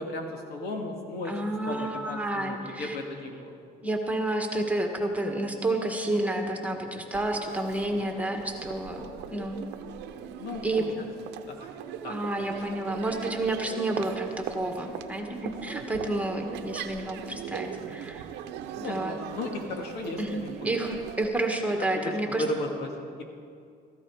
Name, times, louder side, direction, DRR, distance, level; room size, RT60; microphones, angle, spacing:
voice 1, 0.0-1.3 1.6-3.5 10.4-10.8 11.5-11.7 12.0-12.2 18.8-20.5 21.9-22.9, left 2 dB, 70° left, 2 dB, 2.3 m, -35 dB
voice 2, 1.3-3.0 3.8-9.6 10.6-10.9 12.1-18.2 18.8-19.2 20.2-22.4, right 1 dB, 10° right, 2 dB, 1.7 m, -30 dB
Crowd, 7.1-21.3, right 9 dB, 90° right, 0.8 m, -40 dB
16.5 x 15.0 x 4.9 m, 2.4 s
cardioid pair, 110°, 17 cm